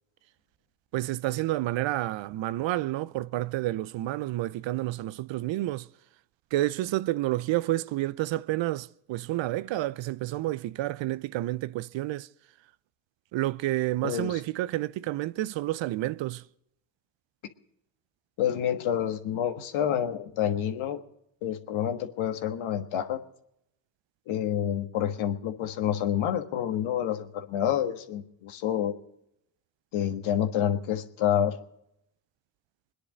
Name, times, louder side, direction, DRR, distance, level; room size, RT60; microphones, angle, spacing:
voice 1, 0.9-5.9 6.5-12.3 13.3-16.4, right 16 dB, 65° right, 0.6 m, -29 dB
voice 2, 18.4-21.0 21.4-23.2 24.3-28.9 29.9-31.6, left 10 dB, 75° left, 1.6 m, -28 dB
22.5 x 10.0 x 5.1 m
supercardioid pair, 55°, 48 cm